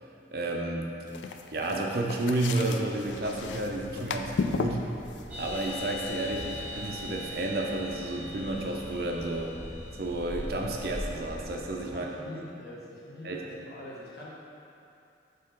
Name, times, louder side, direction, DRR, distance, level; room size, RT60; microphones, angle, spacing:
voice 1, 0.3-0.9 1.5-4.9 5.4-9.5 10.0-12.1 13.2-13.4, right 2 dB, 55° right, 0 dB, 0.6 m, -31 dB
sound 1, 1.1-7.3, left 4 dB, 85° left, 0.4 m, -36 dB
Thunder, 3.0-11.9, equal, 25° left, 1.3 m, -44 dB
sound 2, 5.3-10.9, left 2 dB, 10° right, 1.0 m, -42 dB
voice 2, 11.9-14.3, left 1 dB, 55° left, -6 dB, 1.3 m, -44 dB
5.4 x 3.8 x 5.7 m, 2.7 s
head